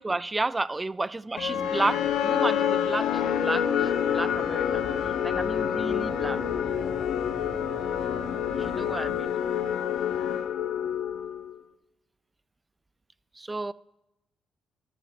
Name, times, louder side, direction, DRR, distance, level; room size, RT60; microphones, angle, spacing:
voice 1, 0.0-4.8 5.2-6.4 7.7-7.8 8.5-9.3 13.4-13.7, right 2 dB, 20° right, 0.3 m, -32 dB
sound 1, 1.4-11.6, left 9 dB, 80° left, 0.7 m, -27 dB
sound 2, 3.1-9.2, left 1 dB, 10° left, 3.6 m, -42 dB
13.0 x 13.0 x 2.2 m
cardioid pair, 90°, 0 cm